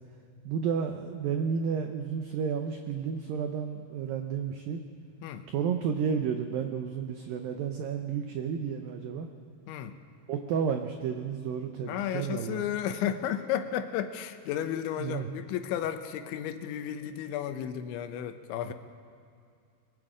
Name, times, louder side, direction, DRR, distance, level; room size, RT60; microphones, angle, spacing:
voice 1, 0.5-4.8 5.5-9.3 10.3-12.7 15.0-15.3, right 7 dB, 85° right, 5 dB, 2.0 m, -31 dB
voice 2, 11.9-18.7, left 10 dB, 85° left, 9 dB, 3.3 m, -33 dB
23.5 x 22.5 x 5.0 m, 2.3 s
omnidirectional pair, 5.3 m